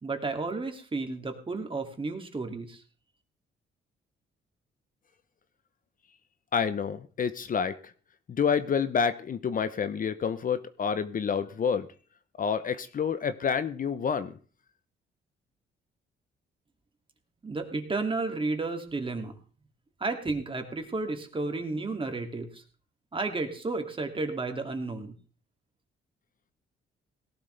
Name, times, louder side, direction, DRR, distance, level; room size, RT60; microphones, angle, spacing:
voice 1, 0.0-2.8 17.4-19.3 20.0-22.6 23.1-25.1, right 3 dB, 25° right, 5 dB, 2.5 m, -32 dB
voice 2, 6.5-7.9 8.3-11.9 12.4-14.4, left 6 dB, 45° left, 12 dB, 0.8 m, -28 dB
18.0 x 12.0 x 3.4 m, 0.39 s
cardioid pair, 90°, 20 cm